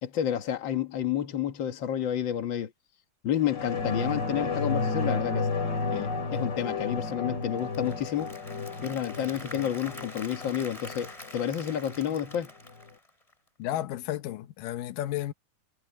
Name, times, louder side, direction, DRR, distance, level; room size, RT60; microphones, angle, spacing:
voice 1, 0.0-2.7 3.2-5.5 5.9-8.3 8.8-12.5, left 10 dB, 60° left, 1.2 m, -30 dB
sound 1, 3.4-12.4 12.8-12.9, left 4 dB, 30° left, 3.7 m, -32 dB
Applause / Crowd, 7.4-13.5, left 1 dB, 10° left, 3.8 m, -46 dB
voice 2, 13.6-15.3, left 13 dB, 80° left, 2.5 m, -32 dB
omnidirectional pair, 3.9 m